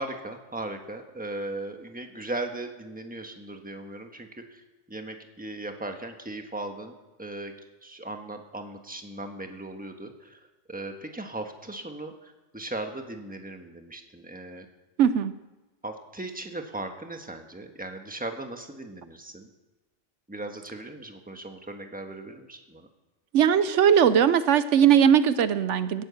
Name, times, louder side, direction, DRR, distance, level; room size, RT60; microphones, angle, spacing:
voice 1, 0.0-6.9 7.2-7.5 7.8-10.4 10.7-14.7 15.8-19.5 20.3-22.9, right 2 dB, 5° right, 4 dB, 1.3 m, -38 dB
voice 2, 15.0-15.3 23.3-26.0, right 8 dB, 75° right, 13 dB, 1.0 m, -19 dB
18.0 x 9.1 x 7.1 m, 1.1 s
omnidirectional pair, 1.2 m